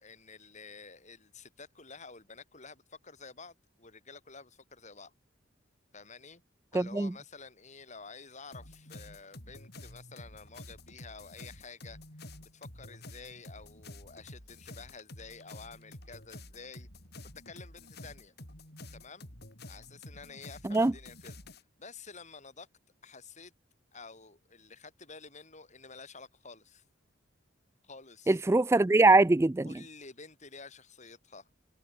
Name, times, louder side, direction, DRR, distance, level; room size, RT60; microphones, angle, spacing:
voice 1, 0.0-5.1 5.9-6.4 6.7-12.0 12.4-16.9 17.4-18.3 18.9-19.3 19.7-21.4 21.8-22.7 23.0-23.5 23.9-26.8 27.8-28.4 29.6-31.5, left 4 dB, 35° left, 5.2 m, -50 dB
voice 2, 6.7-7.1 20.6-20.9 28.3-29.7, right 2 dB, 15° right, 0.3 m, -22 dB
sound 1, 8.5-21.6, left 1 dB, 55° left, 7.3 m, -49 dB
head